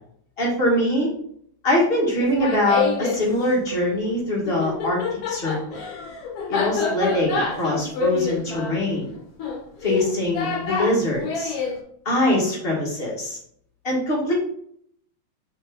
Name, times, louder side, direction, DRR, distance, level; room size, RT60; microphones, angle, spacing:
voice 1, 0.4-1.1 1.6-5.0 5.3-5.8 6.5-9.1 9.8-11.5 12.0-13.4 13.8-14.3, left 1 dB, 25° left, -4 dB, 1.6 m, -23 dB
Laughter, 2.2-3.2 4.5-11.8, left 5 dB, 60° left, 1.8 m, -27 dB
5.3 x 4.9 x 4.0 m, 0.66 s
omnidirectional pair, 3.6 m